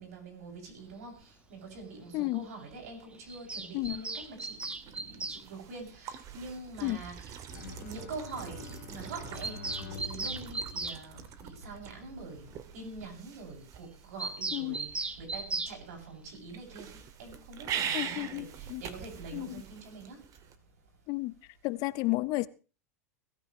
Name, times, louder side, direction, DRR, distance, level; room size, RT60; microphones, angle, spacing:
voice 1, 0.0-7.4 7.7-20.3, right 3 dB, 75° right, 7.2 m, -45 dB
voice 2, 2.1-2.4 3.7-4.0 6.8-7.0 14.5-14.8 17.9-18.8 19.3-19.5 21.1-21.3 21.6-22.5, left 21 dB, 50° left, 0.8 m, -32 dB
Bird vocalization bird call bird song, 3.3-5.4 6.9-7.0 7.2-7.3 7.5-7.6 7.9-8.0 8.3-8.4 8.6-8.8 9.0-11.0 14.2-15.8, right 3 dB, 15° right, 1.3 m, -37 dB
sound 1, 3.8-20.5, right 8 dB, 40° right, 2.3 m, -43 dB
Bowed string instrument, 7.5-11.9, left 9 dB, 75° left, 1.3 m, -48 dB
22.0 x 13.5 x 3.2 m
hypercardioid pair, 105°, 9 cm